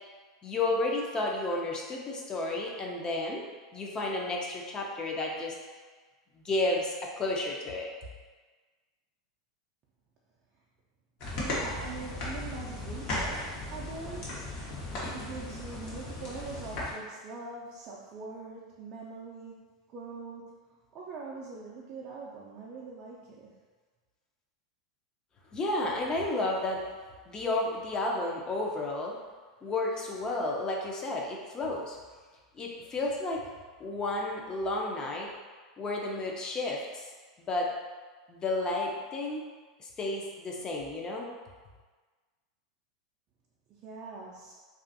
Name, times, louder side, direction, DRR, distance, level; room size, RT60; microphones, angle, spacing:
voice 1, 0.4-3.4 3.7-5.5 6.4-7.9 25.5-26.8 27.3-29.2 29.6-32.0 32.5-33.4 33.8-35.3 35.8-37.1 37.4-37.7 38.3-39.4 39.8-41.3, left 2 dB, 25° left, -1 dB, 0.5 m, -32 dB
sound 1, 11.2-16.9, left 2 dB, 55° left, 0.9 m, -36 dB
voice 2, 11.3-23.7 43.8-44.5, right 4 dB, 40° right, -5 dB, 0.4 m, -43 dB
2.5 x 2.4 x 2.5 m, 1.4 s
hypercardioid pair, 105°, 3 cm